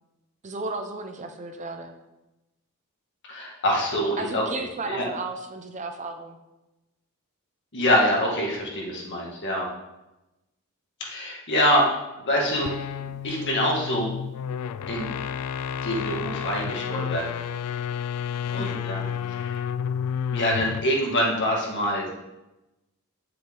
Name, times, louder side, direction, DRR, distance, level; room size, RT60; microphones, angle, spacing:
voice 1, 0.4-2.0 4.2-6.4 18.5-18.9, right 3 dB, 35° right, 6 dB, 0.8 m, -34 dB
voice 2, 3.3-4.4 4.8-5.0 7.7-9.6 11.0-11.9 12.2-12.7 13.0-14.1 14.9-15.1 15.8-17.2 18.5-19.6 20.3-22.1, equal, 55° left, -2 dB, 2.0 m, -25 dB
sound 1, 12.5-21.0, left 7 dB, 85° left, 0.3 m, -31 dB
10.0 x 6.8 x 3.9 m, 0.98 s
head